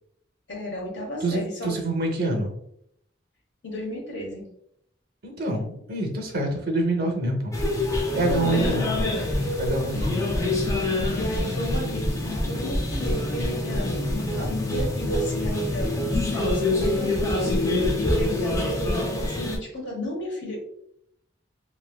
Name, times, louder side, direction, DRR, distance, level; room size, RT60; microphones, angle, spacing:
voice 1, 0.5-1.7 3.6-4.5 8.2-9.0 9.8-10.1 11.1-20.6, left 1 dB, 75° left, -2 dB, 1.2 m, -33 dB
voice 2, 1.2-2.6 5.2-7.5 7.8-9.1 9.6-10.4, right 1 dB, 55° right, 2 dB, 0.6 m, -26 dB
sound 1, 7.5-19.6, left 1 dB, 15° left, 0.4 m, -25 dB
3.2 x 2.5 x 2.3 m, 0.74 s
head